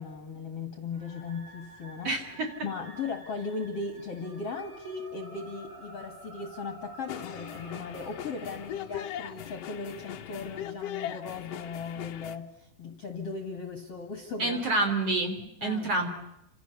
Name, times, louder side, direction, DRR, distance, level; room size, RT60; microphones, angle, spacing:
voice 1, 0.0-2.2 2.6-14.6 15.6-15.9, left 4 dB, 45° left, 7 dB, 2.2 m, -37 dB
sound 1, 0.9-9.1, right 2 dB, 55° right, 7.5 m, -50 dB
voice 2, 2.0-2.5 14.4-16.1, right 2 dB, 40° right, 5 dB, 3.9 m, -28 dB
sound 2, 7.1-12.4, left 10 dB, 85° left, 1.4 m, -39 dB
29.5 x 27.0 x 7.0 m, 0.85 s
omnidirectional pair, 4.8 m